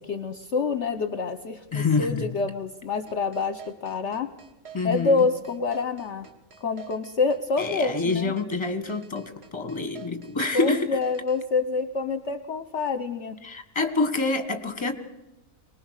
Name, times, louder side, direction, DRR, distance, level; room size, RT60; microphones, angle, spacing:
voice 1, 0.0-4.3 4.8-6.3 6.6-8.3 10.5-13.4, left 4 dB, 55° left, 9 dB, 1.1 m, -27 dB
voice 2, 1.7-2.3 4.7-5.3 7.6-10.9 13.4-14.9, left 3 dB, 20° left, 8 dB, 1.5 m, -27 dB
sound 1, 3.1-11.4, right 8 dB, 45° right, 1.8 m, -47 dB
24.0 x 19.5 x 6.6 m, 0.99 s
omnidirectional pair, 1.6 m